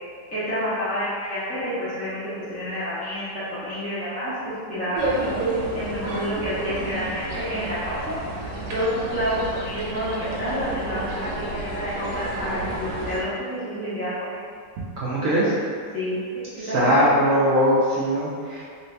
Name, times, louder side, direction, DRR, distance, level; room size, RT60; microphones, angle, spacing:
voice 1, 0.3-2.2 2.5-4.3 4.7-5.2 5.7-8.2 8.7-14.4 15.9-16.2 16.7-17.3, equal, 5° left, -13 dB, 0.6 m, -29 dB
People on the lakeside, 4.9-13.2, right 2 dB, 80° right, 1.3 m, -30 dB
voice 2, 15.0-15.5 16.6-18.6, equal, 65° right, -8 dB, 0.9 m, -20 dB
3.1 x 2.8 x 3.2 m, 2.2 s
omnidirectional pair, 1.9 m